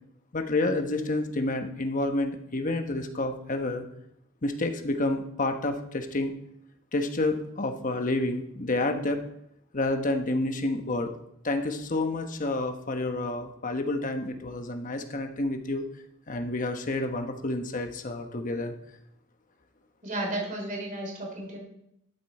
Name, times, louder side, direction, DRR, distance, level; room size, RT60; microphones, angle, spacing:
voice 1, 0.3-3.8 4.4-6.3 6.9-9.2 9.7-11.1 11.4-15.8 16.3-18.7, left 2 dB, 40° left, 6 dB, 1.1 m, -29 dB
voice 2, 20.0-21.6, right 1 dB, 40° right, 1 dB, 3.3 m, -33 dB
12.5 x 8.3 x 4.2 m, 0.77 s
head